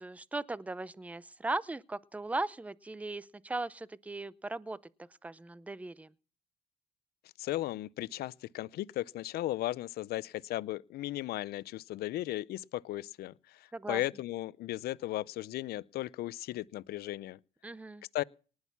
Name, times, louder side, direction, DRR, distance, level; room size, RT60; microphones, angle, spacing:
voice 1, 0.0-4.8 5.2-6.1 13.7-14.0 17.6-18.0, right 2 dB, 10° right, 0.6 m, -38 dB
voice 2, 7.4-17.4 18.1-18.2, left 15 dB, 70° left, 0.6 m, -36 dB
19.0 x 6.4 x 7.2 m
cardioid pair, 110°, 17 cm